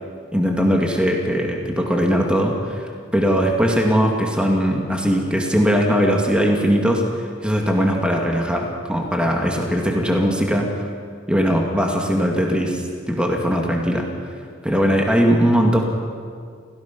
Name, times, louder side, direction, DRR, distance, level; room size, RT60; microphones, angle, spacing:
voice 1, 0.3-10.7 11.3-14.1 14.6-15.8, equal, 5° right, 1 dB, 2.0 m, -20 dB
26.5 x 17.0 x 5.9 m, 2.1 s
head